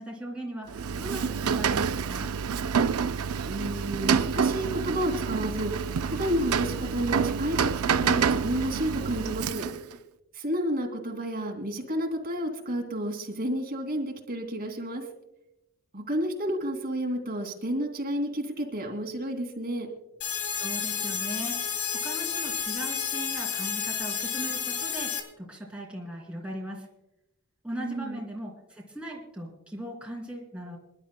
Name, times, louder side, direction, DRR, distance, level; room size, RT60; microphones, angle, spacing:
voice 1, 0.0-2.3 20.5-21.7 22.0-26.9 27.6-30.8, right 1 dB, 5° right, -2 dB, 2.8 m, -38 dB
Rain, 0.7-9.9, right 6 dB, 75° right, 0.5 m, -28 dB
voice 2, 3.5-5.7 6.1-9.6 10.4-15.0 15.9-19.9 27.8-28.2, equal, 45° right, 2 dB, 2.5 m, -31 dB
sound 1, 20.2-25.2, left 7 dB, 75° left, 1.9 m, -31 dB
27.5 x 11.5 x 2.2 m, 0.89 s
head